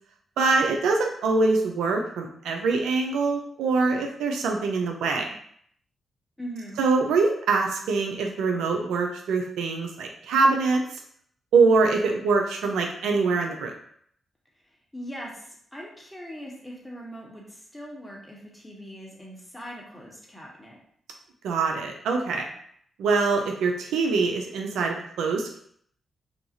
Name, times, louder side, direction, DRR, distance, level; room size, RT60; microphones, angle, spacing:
voice 1, 0.4-5.3 6.8-10.8 11.5-13.7 21.4-22.5 23.0-25.6, right 4 dB, 80° right, 2 dB, 0.4 m, -24 dB
voice 2, 6.4-6.7 14.9-15.4 15.7-20.8, equal, 10° left, -3 dB, 1.1 m, -40 dB
2.5 x 2.3 x 2.8 m, 0.65 s
supercardioid pair, 45°, 0 cm